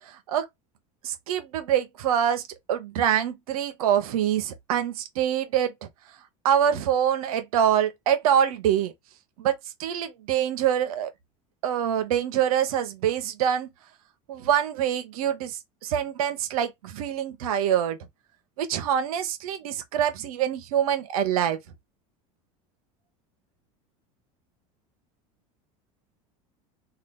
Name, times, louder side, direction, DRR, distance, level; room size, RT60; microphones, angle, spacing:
voice 1, 1.0-2.4 2.7-5.9 6.4-8.9 9.4-11.1 11.6-13.7 14.3-18.0 18.6-21.6, right 9 dB, 85° right, 0.7 m, -25 dB
2.8 x 2.2 x 3.3 m
supercardioid pair, 100°, 18 cm